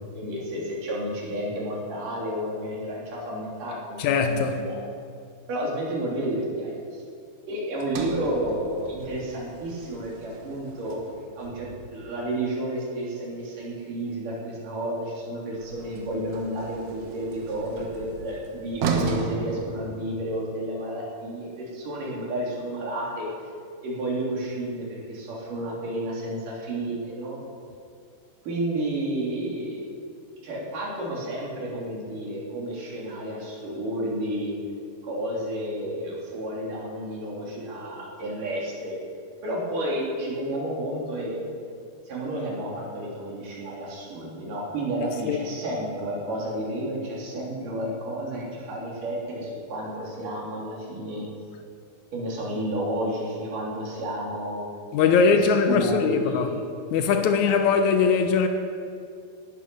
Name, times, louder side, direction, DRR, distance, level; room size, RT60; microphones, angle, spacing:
voice 1, 0.1-4.8 5.5-6.8 7.5-11.0 11.4-23.3 23.8-27.4 28.4-29.9 30.4-34.5 35.0-39.0 39.4-41.4 42.1-51.3 52.1-54.7 55.1-56.6, right 1 dB, 55° right, 4.4 m, -31 dB
voice 2, 4.0-4.6 45.3-45.4 54.9-56.5 56.9-58.5, left 5 dB, 85° left, 1.6 m, -21 dB
Sliding door, 7.8-12.1 15.5-20.5, right 4 dB, 80° right, 3.3 m, -35 dB
18.5 x 11.0 x 5.4 m
omnidirectional pair, 4.5 m